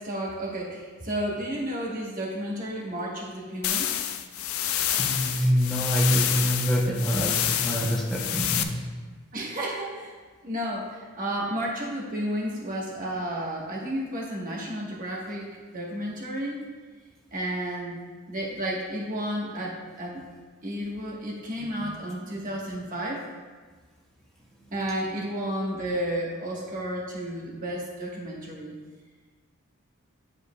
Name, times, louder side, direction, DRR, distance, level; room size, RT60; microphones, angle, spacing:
voice 1, 0.0-4.1 4.9-5.0 9.3-10.1 10.4-16.6 17.3-18.0 18.3-20.2 20.6-23.2 24.7-28.7, right 1 dB, 40° right, -3 dB, 1.2 m, -32 dB
sound 1, 3.6-8.6, left 10 dB, 75° left, 0.4 m, -28 dB
voice 2, 5.0-8.8 21.6-21.9 24.6-24.7, equal, 5° left, -5 dB, 0.7 m, -26 dB
10.5 x 4.9 x 2.3 m, 1.5 s
head